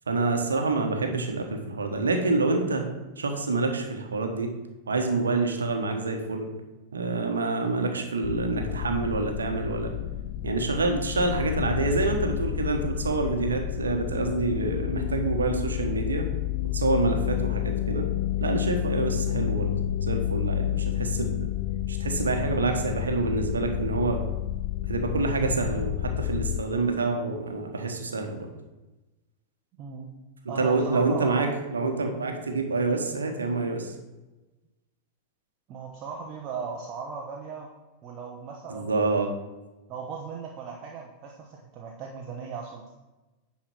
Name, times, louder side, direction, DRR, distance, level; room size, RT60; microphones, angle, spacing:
voice 1, 0.1-2.9 3.2-4.5 4.9-6.5 6.9-9.9 10.4-16.3 16.7-18.1 18.4-19.7 20.0-21.5 21.9-24.2 24.8-28.5 30.6-33.9 38.7-39.3, right 3 dB, 70° right, 4 dB, 1.3 m, -27 dB
sound 1, 8.2-26.6, left 13 dB, 50° left, 0.4 m, -30 dB
voice 2, 29.7-30.1 30.5-31.6 35.7-37.7 38.0-39.3 39.9-42.9, right 5 dB, 35° right, 1 dB, 1.0 m, -38 dB
10.0 x 4.3 x 6.1 m, 1.1 s
figure-of-eight pair, 90°, 0 cm